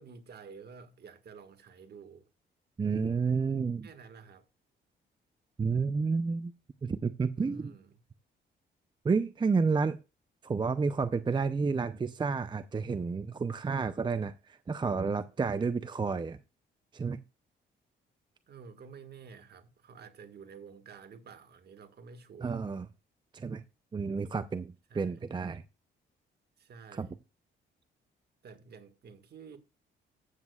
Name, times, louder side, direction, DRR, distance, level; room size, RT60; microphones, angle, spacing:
voice 1, 0.0-2.3 3.8-4.4 7.3-8.0 18.5-22.6 24.9-25.2 26.6-27.2 28.4-29.6, right 5 dB, 55° right, 1.7 m, -51 dB
voice 2, 2.8-3.9 5.6-6.5 6.8-7.7 9.0-10.0 10.4-16.4 16.9-17.2 22.4-22.9 23.3-23.6 23.9-25.6 26.9-27.1, right 4 dB, 25° right, 0.6 m, -30 dB
15.0 x 8.1 x 2.4 m
cardioid pair, 90°, 20 cm